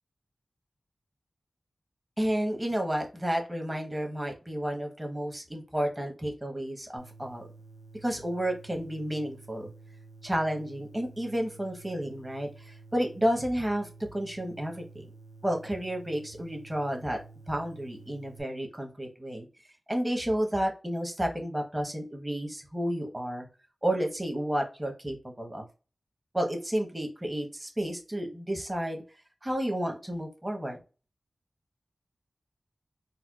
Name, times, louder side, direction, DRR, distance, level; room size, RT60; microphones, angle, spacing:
voice 1, 2.2-7.5 8.0-9.7 10.2-15.1 15.4-17.2 17.5-19.5 19.9-23.5 23.8-25.6 26.3-29.0 29.4-30.8, equal, 20° right, 2 dB, 1.0 m, -31 dB
sound 1, 7.0-18.4, right 3 dB, 60° right, 0.9 m, -51 dB
4.2 x 2.2 x 2.4 m, 0.33 s
wide cardioid pair, 60°, 0 cm